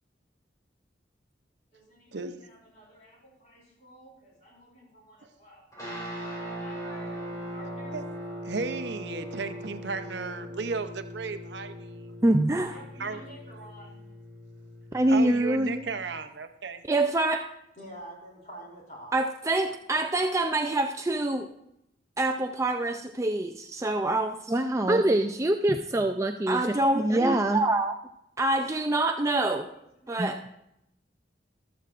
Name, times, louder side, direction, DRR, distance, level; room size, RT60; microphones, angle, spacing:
voice 1, 1.7-5.6 6.5-8.0 12.7-14.0 17.8-19.2 19.6-20.0 29.7-30.4, right 1 dB, 40° left, -3 dB, 4.5 m, -49 dB
sound 1, 5.7-16.2, equal, 20° left, 4.6 m, -40 dB
voice 2, 8.4-12.1 13.0-13.2 15.1-16.8, right 4 dB, 70° right, 9 dB, 0.7 m, -34 dB
voice 3, 12.2-12.8 14.9-15.8 16.9-17.5 19.1-21.5 22.2-28.0 28.4-29.7 30.1-30.5, right 1 dB, 15° right, 5 dB, 0.4 m, -25 dB
14.0 x 13.0 x 2.5 m, 0.80 s
head